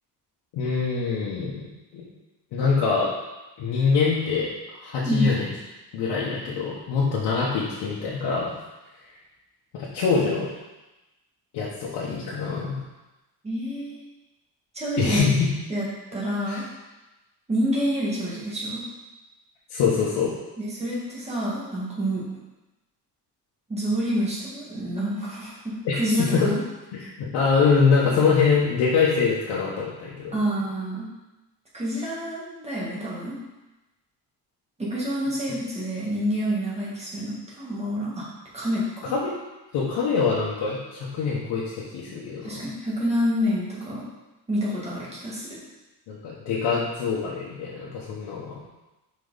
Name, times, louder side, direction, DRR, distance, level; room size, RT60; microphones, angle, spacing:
voice 1, 0.5-2.0 2.5-3.1 3.6-5.4 5.9-8.5 9.7-10.5 11.5-12.8 15.0-15.5 16.5-16.6 19.7-20.3 25.8-25.9 26.3-26.5 26.9-27.1 27.3-30.4 39.0-39.4 39.7-42.6 46.1-48.5, left 5 dB, 85° left, -7 dB, 1.3 m, -24 dB
voice 2, 5.0-5.4 13.4-14.0 14.7-15.3 15.7-15.8 16.1-16.7 17.5-18.9 20.6-22.3 23.7-26.6 30.3-31.1 31.7-33.4 34.8-38.2 38.5-39.1 42.4-44.1 44.5-45.6, equal, 15° right, -6 dB, 1.8 m, -28 dB
5.3 x 5.0 x 4.0 m, 1.0 s
cardioid pair, 165°, 39 cm